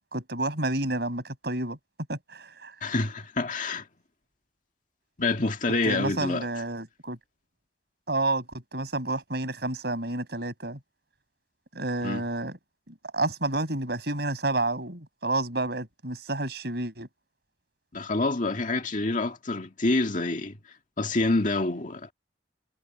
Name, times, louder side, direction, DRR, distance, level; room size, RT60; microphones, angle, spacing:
voice 1, 0.1-1.8 2.1-2.7 5.8-7.2 8.1-10.8 11.7-12.6 12.9-17.1, right 2 dB, 60° right, 6.1 m, -30 dB
voice 2, 2.8-3.9 5.2-6.5 12.0-12.2 17.9-20.6 21.0-22.1, left 2 dB, 45° left, 2.0 m, -27 dB
head